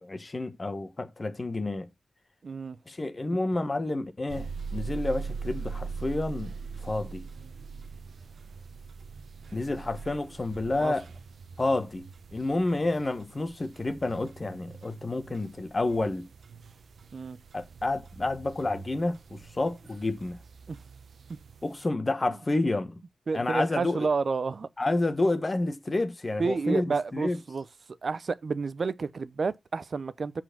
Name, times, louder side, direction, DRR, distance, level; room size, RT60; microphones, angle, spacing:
voice 1, 0.0-1.9 2.9-6.5 6.8-7.2 9.5-11.0 11.6-12.1 12.3-16.3 17.5-20.4 21.6-23.0 23.3-24.1 24.8-27.4, left 2 dB, 30° left, 1.4 m, -29 dB
voice 2, 2.4-2.8 10.8-10.9 17.1-17.4 20.7-20.8 21.3-21.4 23.3-24.7 26.4-27.7 28.0-30.4, right 4 dB, 55° right, 0.6 m, -30 dB
sound 1, 4.3-21.9, right 5 dB, 75° right, 1.0 m, -42 dB
7.9 x 4.5 x 5.9 m
wide cardioid pair, 120°, 0 cm